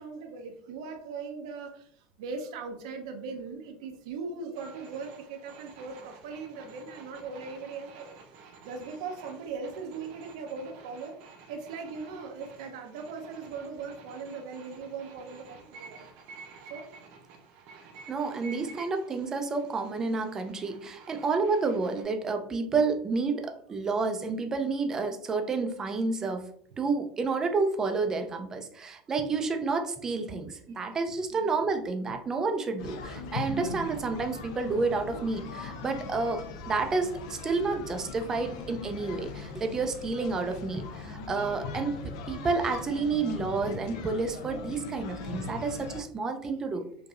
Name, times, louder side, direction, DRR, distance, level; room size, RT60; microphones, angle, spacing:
voice 1, 0.0-1.9 2.2-8.2 8.6-11.2 11.5-16.1 16.7-16.9 31.3-31.5 33.5-33.8 41.8-41.9 45.2-45.3, right 4 dB, 85° right, 5 dB, 0.7 m, -39 dB
sound 1, 4.5-22.0, right 5 dB, 55° right, 0.7 m, -51 dB
voice 2, 18.1-26.5 26.8-42.0 42.3-46.8, right 4 dB, 15° right, 6 dB, 0.4 m, -30 dB
sound 2, 32.8-46.0, left 4 dB, 80° left, 0.5 m, -40 dB
4.7 x 2.6 x 2.4 m, 0.62 s
cardioid pair, 165°, 3 cm